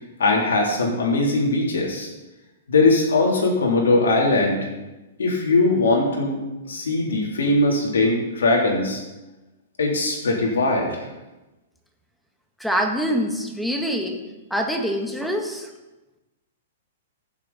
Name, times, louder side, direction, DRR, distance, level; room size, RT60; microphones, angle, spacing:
voice 1, 0.2-2.1 2.7-4.6 5.2-6.4 6.7-9.0 9.8-11.1, left 2 dB, 85° left, -1 dB, 3.6 m, -20 dB
voice 2, 12.6-14.2 14.5-15.7, equal, ahead, 2 dB, 1.6 m, -25 dB
15.5 x 7.3 x 4.3 m, 1.1 s
hypercardioid pair, 130°, 0 cm